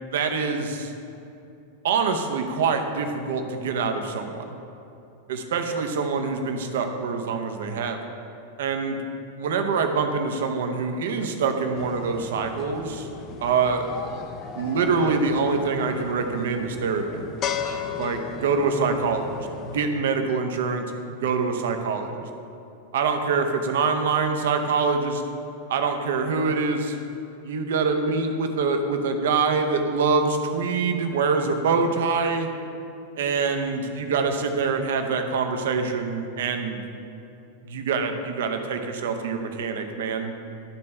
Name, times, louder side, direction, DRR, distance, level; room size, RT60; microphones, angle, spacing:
voice 1, 0.1-0.9 1.8-4.5 5.3-8.0 8.6-9.0 9.4-13.1 13.4-13.9 14.6-17.2 18.0-20.8 21.2-22.3 22.9-25.2 25.7-27.0 27.4-32.5 33.2-36.8 37.6-40.3, right 4 dB, 60° right, 6 dB, 0.7 m, -25 dB
sound 1, 11.8-19.9, left 7 dB, 35° left, 0.5 m, -36 dB
11.5 x 4.2 x 5.6 m, 2.8 s
figure-of-eight pair, 90°, 0 cm